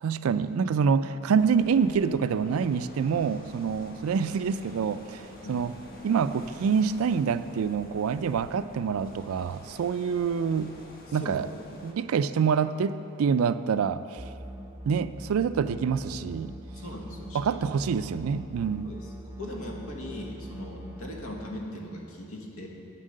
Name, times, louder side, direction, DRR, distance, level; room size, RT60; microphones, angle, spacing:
voice 1, 0.0-5.7 6.0-10.7 11.1-11.5 11.8-14.2 14.9-16.5 17.3-18.9, right 6 dB, 75° right, 13 dB, 0.4 m, -26 dB
sound 1, 1.4-11.9, left 1 dB, 45° left, 1.2 m, -48 dB
voice 2, 11.1-11.4 16.7-17.7 18.8-19.0 19.4-22.7, left 1 dB, 75° left, 0 dB, 1.5 m, -39 dB
sound 2, 14.2-21.2, equal, 10° right, 0.6 m, -42 dB
9.4 x 7.3 x 6.5 m, 2.8 s
head